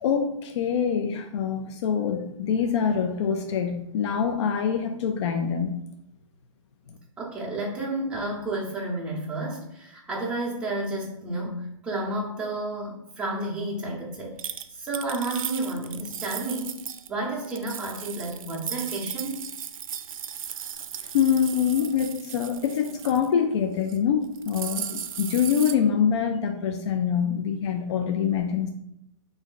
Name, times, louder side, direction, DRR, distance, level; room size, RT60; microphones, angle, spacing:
voice 1, 0.0-5.8 21.0-28.7, left 7 dB, 55° left, 6 dB, 0.4 m, -25 dB
voice 2, 7.2-14.4 14.7-16.8 17.1-19.4, right 2 dB, 5° right, -5 dB, 0.7 m, -31 dB
Sunflower seed pour, 14.4-17.1 17.4-23.3 23.7-24.0 24.2-25.7, right 9 dB, 80° right, 0.4 m, -36 dB
3.1 x 2.6 x 3.8 m, 0.79 s
hypercardioid pair, 150°, 17 cm